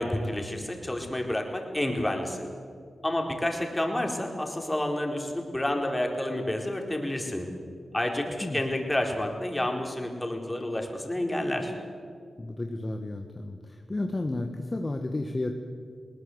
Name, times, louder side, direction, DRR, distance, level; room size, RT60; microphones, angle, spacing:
voice 1, 0.0-2.5 3.0-7.5 7.9-11.7, left 1 dB, 20° left, 2 dB, 4.6 m, -29 dB
voice 2, 12.4-15.5, left 2 dB, 35° left, 4 dB, 1.7 m, -32 dB
21.0 x 19.0 x 8.2 m, 2.3 s
cardioid pair, 45°, 0 cm